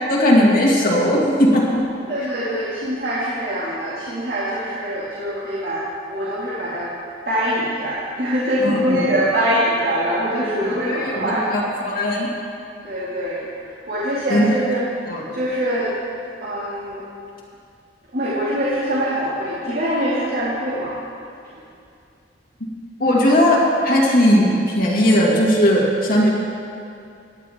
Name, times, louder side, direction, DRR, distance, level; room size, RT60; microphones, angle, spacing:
voice 1, 0.1-1.8 8.6-9.1 10.3-12.3 14.3-14.5 15.1-15.2 23.0-26.3, equal, 50° left, -4 dB, 2.1 m, -18 dB
voice 2, 2.1-6.9 7.3-11.5 12.8-14.9 15.3-16.0 16.4-17.0 18.1-21.0, equal, 55° right, -8 dB, 2.2 m, -23 dB
18.5 x 10.5 x 3.6 m, 2.5 s
head